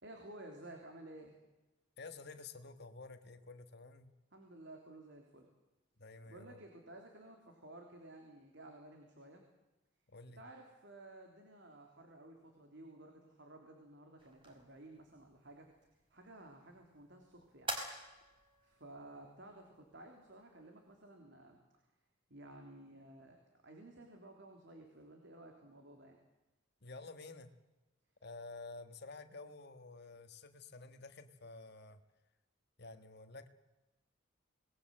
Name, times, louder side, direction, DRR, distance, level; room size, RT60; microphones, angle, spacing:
voice 1, 0.0-1.4 4.3-5.5 6.3-9.4 10.4-17.7 18.6-21.6 22.3-26.2, right 1 dB, 60° right, 3 dB, 3.4 m, -54 dB
voice 2, 2.0-4.1 6.0-6.6 10.1-10.4 26.8-27.5 28.2-32.0 32.8-33.5, left 3 dB, 55° left, 8 dB, 1.6 m, -51 dB
sound 1, 14.2-21.1, right 1 dB, 25° right, 4.4 m, -49 dB
26.5 x 20.0 x 7.7 m, 1.1 s
head